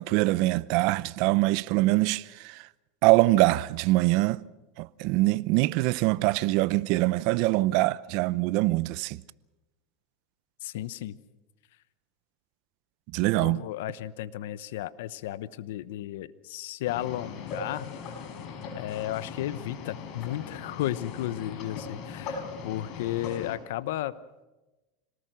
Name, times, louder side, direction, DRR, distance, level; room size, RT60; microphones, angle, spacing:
voice 1, 0.0-2.7 3.0-4.4 4.8-9.2 13.1-13.6, right 20 dB, 60° right, 0.7 m, -24 dB
voice 2, 10.6-11.2 13.4-18.2 18.8-24.2, left 13 dB, 75° left, 0.9 m, -34 dB
sound 1, 16.9-23.6, left 5 dB, 50° left, 5.1 m, -39 dB
26.5 x 19.0 x 6.3 m
supercardioid pair, 120°, 0 cm